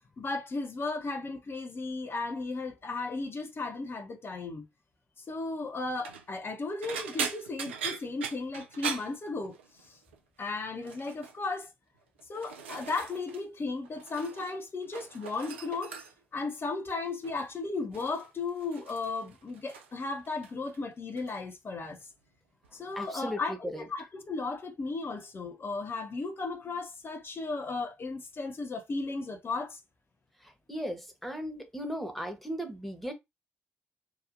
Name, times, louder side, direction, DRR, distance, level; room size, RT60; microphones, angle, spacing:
voice 1, 0.2-4.7 5.3-10.0 10.4-11.7 12.3-16.0 16.3-22.0 22.7-29.8, left 3 dB, 40° left, 0.8 m, -35 dB
sound 1, 5.9-6.3 6.8-9.9 10.1-10.5 10.8-11.4 12.0-13.4 13.7-14.6 14.8-16.4 17.2-17.5 17.9-20.0 20.3-20.8 21.2-21.4 22.6-22.7, right 6 dB, 85° right, 0.3 m, -40 dB
voice 2, 22.9-23.8 30.4-33.1, equal, ahead, 0.9 m, -37 dB
2.9 x 2.4 x 2.5 m
hypercardioid pair, 40°, 6 cm